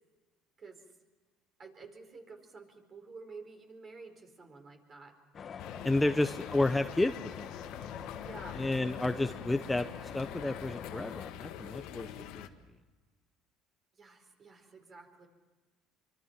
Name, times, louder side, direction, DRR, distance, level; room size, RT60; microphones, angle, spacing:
voice 1, 1.6-5.2 5.9-6.3 8.2-8.6 13.9-15.3, right 4 dB, 35° right, 5 dB, 4.5 m, -51 dB
sound 1, 5.3-11.3, left 7 dB, 35° left, 1.1 m, -46 dB
sound 2, 5.6-12.5, left 10 dB, 75° left, 1.6 m, -45 dB
voice 2, 5.8-7.5 8.5-9.9 10.1-12.1 12.3-12.5, left 2 dB, 10° left, 8 dB, 0.7 m, -31 dB
26.0 x 24.5 x 5.9 m, 1.2 s
cardioid pair, 115°, 0 cm